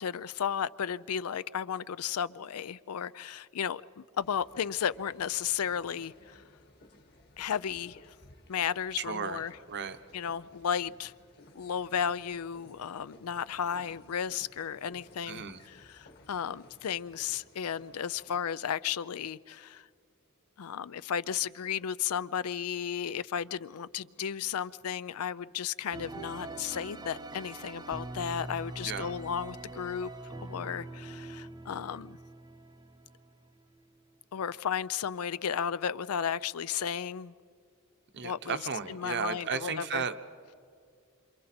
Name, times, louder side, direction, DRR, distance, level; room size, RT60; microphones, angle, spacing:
voice 1, 0.0-6.4 7.4-8.1 8.5-9.5 10.1-11.1 11.5-19.9 20.6-30.1 30.4-32.2 34.3-37.3 38.2-38.6 38.9-40.0, left 8 dB, 75° left, 0.5 m, -34 dB
sound 1, 4.2-18.4, left 1 dB, 45° left, 1.7 m, -58 dB
voice 2, 9.0-10.0 15.3-15.6 28.8-29.2 38.1-40.1, right 6 dB, 55° right, 0.9 m, -35 dB
sound 2, 25.9-33.5, right 2 dB, 20° right, 0.8 m, -43 dB
27.5 x 27.0 x 4.4 m
head